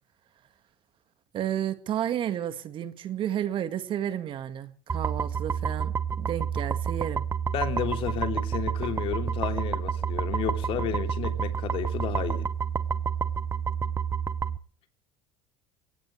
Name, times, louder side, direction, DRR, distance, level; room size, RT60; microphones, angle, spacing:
voice 1, 1.3-7.2, right 10 dB, 50° right, 11 dB, 1.8 m, -32 dB
sound 1, 4.9-14.6, right 7 dB, 25° right, 1.0 m, -29 dB
voice 2, 7.5-12.5, left 9 dB, 55° left, 7 dB, 3.2 m, -32 dB
23.0 x 18.0 x 3.3 m, 0.42 s
supercardioid pair, 85°, 11 cm